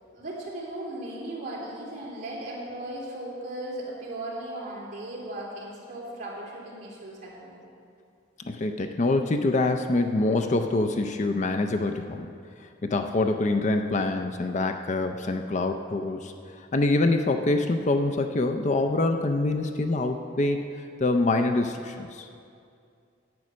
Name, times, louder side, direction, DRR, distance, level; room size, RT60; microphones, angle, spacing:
voice 1, 0.1-7.6, right 1 dB, 40° right, -6 dB, 2.9 m, -37 dB
voice 2, 8.4-12.3 12.8-16.3 16.7-22.3, left 2 dB, 35° left, 6 dB, 0.4 m, -25 dB
11.0 x 8.3 x 6.2 m, 2.4 s
head